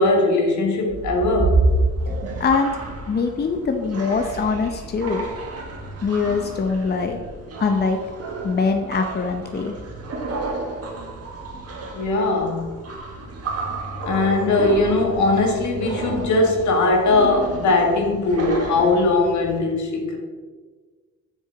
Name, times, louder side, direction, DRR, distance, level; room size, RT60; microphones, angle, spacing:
voice 1, 0.0-1.6 11.9-12.7 14.1-20.2, left 2 dB, 70° left, 1 dB, 1.8 m, -20 dB
sound 1, 0.9-19.6, right 2 dB, 55° right, 1.5 m, -29 dB
voice 2, 2.4-2.7 3.1-5.3 6.0-7.2 7.6-8.0 8.4-9.7, left 4 dB, 35° left, 5 dB, 0.7 m, -22 dB
7.5 x 6.5 x 3.8 m, 1.4 s
cardioid pair, 90°, 30 cm